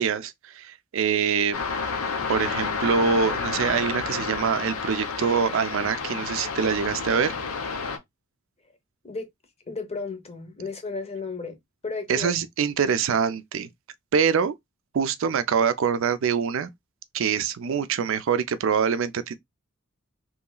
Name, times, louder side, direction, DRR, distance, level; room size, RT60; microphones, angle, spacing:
voice 1, 0.0-1.6 2.3-7.3 12.1-13.7 14.1-14.5 14.9-16.7 17.1-19.4, right 6 dB, 65° right, 0.4 m, -24 dB
sound 1, 1.5-8.0, left 5 dB, 90° left, 0.7 m, -30 dB
voice 2, 9.7-11.6 11.8-12.3, left 4 dB, 30° left, 0.7 m, -33 dB
3.1 x 2.9 x 2.2 m
head